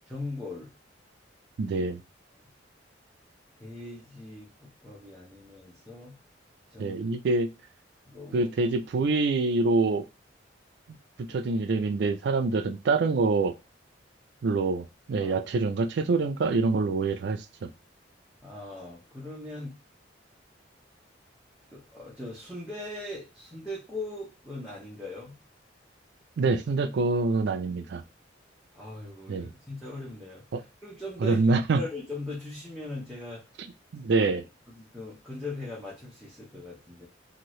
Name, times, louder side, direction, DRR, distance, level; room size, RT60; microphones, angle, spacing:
voice 1, 0.1-0.7 3.6-4.5 4.8-6.1 6.7-7.0 8.1-8.5 11.3-11.4 15.2-15.5 18.4-19.7 21.7-25.3 28.7-31.4 31.7-33.4 34.1-34.3 34.7-37.1, left 2 dB, 5° right, -7 dB, 0.8 m, -40 dB
voice 2, 1.6-2.0 6.8-7.5 8.3-10.1 11.3-13.5 14.4-17.7 26.4-28.0 29.3-29.5 30.5-30.6 31.2-31.8 33.9-34.4, right 3 dB, 60° right, 9 dB, 0.4 m, -25 dB
2.9 x 2.6 x 3.0 m, 0.28 s
head